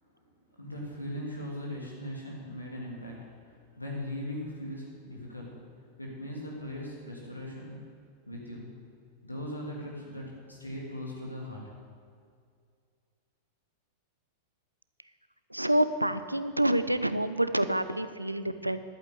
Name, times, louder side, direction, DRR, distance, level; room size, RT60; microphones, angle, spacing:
voice 1, 0.5-5.6 6.0-7.9 8.3-8.7 9.2-11.6, left 1 dB, 85° left, -3 dB, 3.1 m, -39 dB
voice 2, 15.5-18.8, right 1 dB, 85° right, 12 dB, 0.5 m, -27 dB
11.5 x 8.4 x 8.3 m, 2.2 s
figure-of-eight pair, 90°, 0 cm